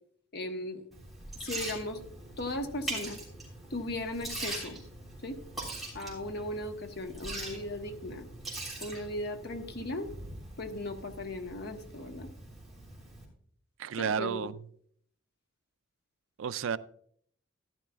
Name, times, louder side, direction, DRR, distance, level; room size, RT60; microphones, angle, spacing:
voice 1, 0.3-0.9 1.4-2.0 2.4-3.2 3.7-4.8 5.2-5.4 5.9-8.3 8.8-10.1 10.6-12.3 14.0-14.5, left 1 dB, 55° left, 1.2 m, -37 dB
Liquid, 0.9-13.2, right 2 dB, ahead, 3.5 m, -42 dB
voice 2, 13.8-14.6 16.4-16.8, right 7 dB, 75° right, 0.4 m, -32 dB
13.5 x 11.0 x 2.4 m
head